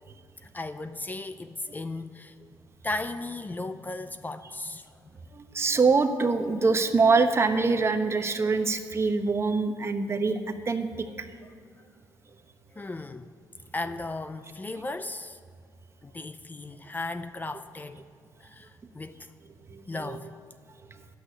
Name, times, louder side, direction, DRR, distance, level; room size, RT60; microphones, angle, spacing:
voice 1, 0.4-2.3 2.8-5.0 12.8-13.3 13.7-15.4 16.0-18.0 18.4-19.3 19.9-20.3, left 2 dB, 20° left, 0.6 m, -36 dB
voice 2, 5.3-11.2 19.7-20.2, right 4 dB, 35° right, 1.0 m, -24 dB
10.0 x 8.3 x 9.7 m
cardioid pair, 80°, 8 cm